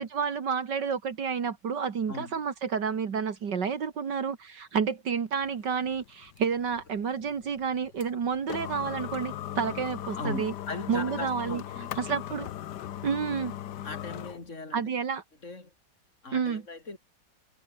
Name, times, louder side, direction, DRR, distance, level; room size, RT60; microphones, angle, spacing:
voice 1, 0.0-10.5 10.9-11.6 12.0-12.5 13.0-13.6 14.7-15.2 16.3-16.6, right 6 dB, 70° right, 2.5 m, -30 dB
voice 2, 2.1-2.4 3.6-3.7 10.2-12.2 13.8-14.9 15.4-15.7 16.2-17.0, left 3 dB, 40° left, 4.9 m, -39 dB
sound 1, 5.4-14.5, left 12 dB, 70° left, 1.4 m, -39 dB
omnidirectional pair, 1.9 m